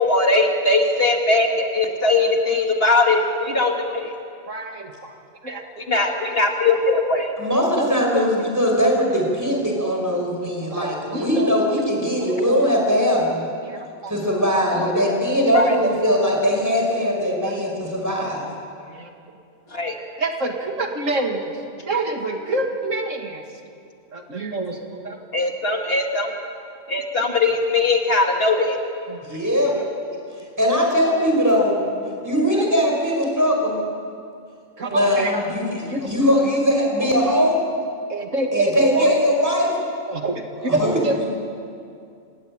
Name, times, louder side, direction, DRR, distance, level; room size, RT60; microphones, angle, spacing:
voice 1, 0.0-4.1 5.9-7.3 15.5-15.8 19.7-20.0 25.3-26.4 26.9-28.8, left 3 dB, 50° left, 2 dB, 2.4 m, -20 dB
voice 2, 4.5-5.1 5.4-5.6 5.9-6.1 7.8-8.9 9.5-9.6 9.9-11.5 12.2-12.6 13.6-14.1 14.7-15.1 15.4-15.9 17.4-17.7 18.8-19.1 20.2-21.6 21.9-23.4 24.1-24.8 25.0-25.2 29.1-29.4 29.7-29.9 31.2-31.3 31.6-31.8 32.6-32.9 33.4-33.5 34.8-35.4 35.9-36.1 37.0-37.1 38.1-39.2 40.1-41.2, right 2 dB, 80° right, 3 dB, 2.5 m, -27 dB
voice 3, 7.4-13.5 14.1-18.5 29.2-29.7 30.6-31.8 32.2-33.8 34.9-37.6 38.5-39.8 40.6-41.3, equal, 15° right, 0 dB, 5.7 m, -20 dB
28.0 x 18.5 x 9.0 m, 2.4 s
omnidirectional pair, 1.3 m